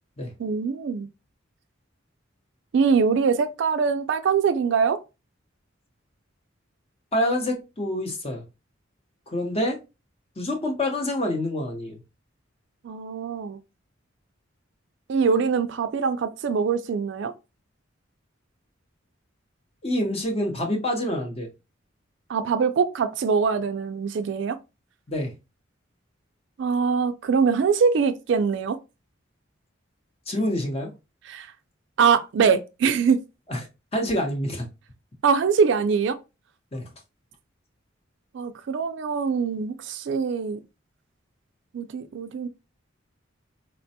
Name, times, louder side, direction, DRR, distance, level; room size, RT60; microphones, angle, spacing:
voice 1, 0.4-1.1 2.7-5.0 12.8-13.6 15.1-17.3 22.3-24.6 26.6-28.8 31.3-31.5 32.0-33.2 35.2-36.2 38.3-40.6 41.7-42.5, right 5 dB, 65° right, 0.3 m, -23 dB
voice 2, 7.1-8.4 9.3-9.8 10.4-12.0 19.8-21.5 25.1-25.3 30.3-30.9 33.5-33.6 33.9-34.7 36.7-36.9, left 1 dB, 30° left, 0.7 m, -26 dB
4.1 x 2.2 x 2.7 m
head